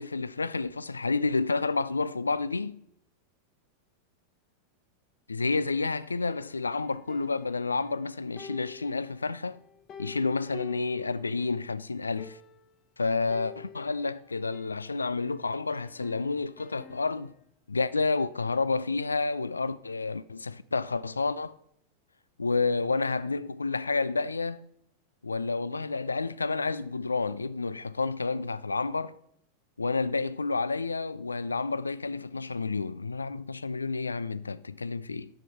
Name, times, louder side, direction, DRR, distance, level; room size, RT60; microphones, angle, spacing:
voice 1, 0.0-2.8 5.3-9.6 10.0-12.4 13.0-17.3 17.7-21.5 22.4-24.7 25.2-29.1 29.8-35.3, left 3 dB, 80° left, 0.3 m, -30 dB
sound 1, 6.3-8.0 8.4-11.6 11.9-12.0 12.2-12.8 13.3-15.3 15.7-17.4, left 5 dB, 30° left, 0.6 m, -49 dB
9.8 x 6.7 x 4.2 m
figure-of-eight pair, 90°, 0 cm